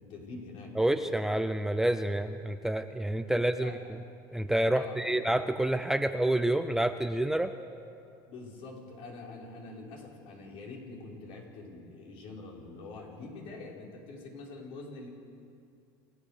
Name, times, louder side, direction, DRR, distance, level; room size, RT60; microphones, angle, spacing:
voice 1, 0.0-0.7 3.3-3.8 4.7-5.2 8.2-15.1, left 3 dB, 55° left, -1 dB, 5.2 m, -45 dB
voice 2, 0.8-3.7 4.3-7.5, right 1 dB, 5° right, 8 dB, 0.6 m, -28 dB
28.0 x 17.0 x 6.7 m, 2.5 s
cardioid pair, 135°, 11 cm